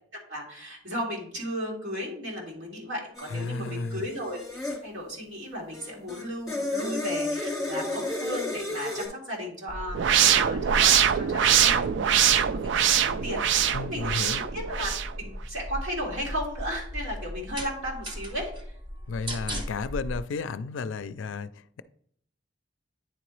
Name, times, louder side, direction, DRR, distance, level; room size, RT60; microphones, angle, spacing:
voice 1, 0.1-4.4 4.8-14.9 15.2-18.7, equal, 85° right, -3 dB, 2.3 m, -35 dB
sound 1, 3.2-4.8 5.7-9.1, left 2 dB, ahead, 2.4 m, -32 dB
voice 2, 3.3-4.0 13.7-14.4 19.1-21.8, left 4 dB, 90° left, 14 dB, 0.4 m, -33 dB
sound 2, 9.7-20.2, equal, 25° right, 0.9 m, -37 dB
sound 3, 9.9-15.1, right 9 dB, 70° right, 0.4 m, -23 dB
9.3 x 3.8 x 3.1 m, 0.64 s
head